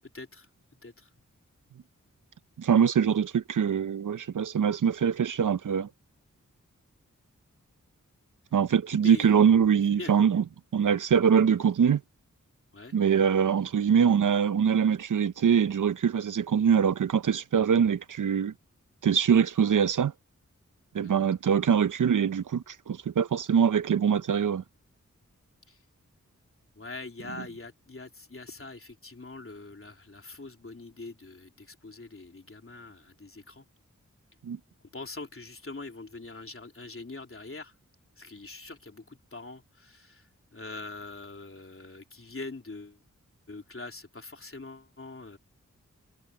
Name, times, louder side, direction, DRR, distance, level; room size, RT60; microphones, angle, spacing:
voice 1, 0.1-0.5 0.8-1.1 9.0-9.3 9.9-10.1 12.7-13.0 20.9-21.2 25.7-25.8 26.7-33.6 34.9-37.7 38.2-43.0 43.5-45.4, left 3 dB, 45° left, 3.4 m, -43 dB
voice 2, 2.6-5.9 8.5-10.4 10.7-12.0 12.9-18.5 19.0-20.1 20.9-24.6 34.4-34.6, right 7 dB, 75° right, 0.7 m, -23 dB
cardioid pair, 50°, 31 cm